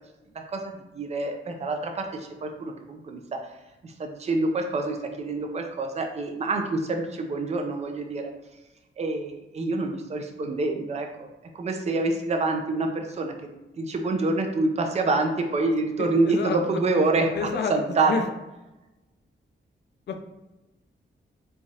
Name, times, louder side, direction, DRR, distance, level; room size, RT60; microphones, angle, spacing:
voice 1, 0.5-3.2 3.8-8.3 9.0-11.3 11.5-13.3 13.8-18.3, right 3 dB, 35° right, 4 dB, 0.4 m, -27 dB
voice 2, 16.0-16.6 17.4-17.7 18.1-18.2 20.1-20.2, left 5 dB, 60° left, 5 dB, 0.4 m, -28 dB
3.5 x 3.2 x 2.7 m, 1.0 s
wide cardioid pair, 150°, 20 cm